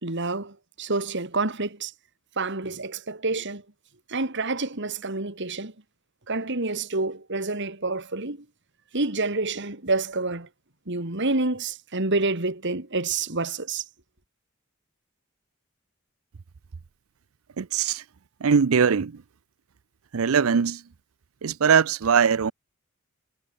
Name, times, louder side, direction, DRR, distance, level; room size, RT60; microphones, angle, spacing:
voice 1, 0.0-1.9 2.4-3.6 4.1-5.7 6.3-8.4 8.9-10.5 10.9-13.8, right 3 dB, 60° right, 2.9 m, -28 dB
voice 2, 17.6-18.0 18.4-19.1 20.1-20.8 21.4-22.5, right 6 dB, 80° right, 0.6 m, -21 dB
head